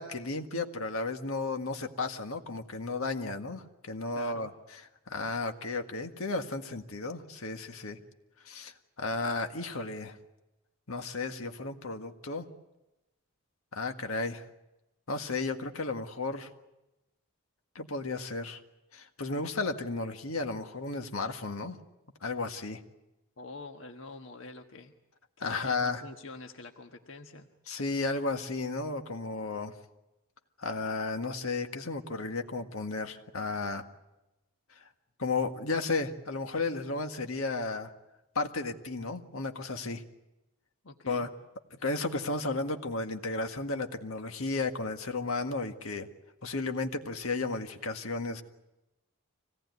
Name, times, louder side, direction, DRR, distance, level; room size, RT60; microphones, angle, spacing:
voice 1, 0.0-4.5 5.1-8.0 8.5-10.2 10.9-12.5 13.7-14.5 15.1-16.5 17.8-18.6 18.9-21.8 22.2-22.8 25.4-26.0 27.7-29.7 30.6-33.8 35.2-37.9 38.4-40.0 41.1-41.3 41.8-46.1 46.4-48.4, left 3 dB, 85° left, 5 dB, 1.7 m, -33 dB
voice 2, 4.1-4.5 23.4-24.9 25.4-27.5 40.8-41.3, left 3 dB, 65° left, 4 dB, 1.3 m, -46 dB
25.5 x 18.0 x 9.5 m, 0.97 s
head